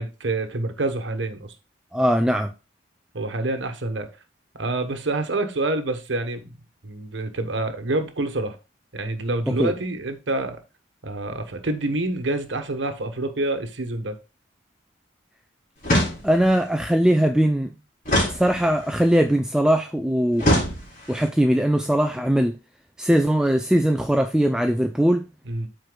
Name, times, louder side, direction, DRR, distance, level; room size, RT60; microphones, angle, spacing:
voice 1, 0.0-1.5 3.1-4.1 4.5-6.6 6.8-8.6 8.9-10.6 11.0-14.2 25.4-25.7, right 2 dB, 70° right, 1.1 m, -27 dB
voice 2, 1.9-2.5 9.6-9.7 16.2-17.7 18.3-20.5 21.1-22.6 23.0-25.2, right 1 dB, 5° right, 0.3 m, -20 dB
sound 1, 15.8-16.6 18.1-19.0 20.4-21.3, equal, 40° left, 3.6 m, -23 dB
13.0 x 4.5 x 2.3 m
head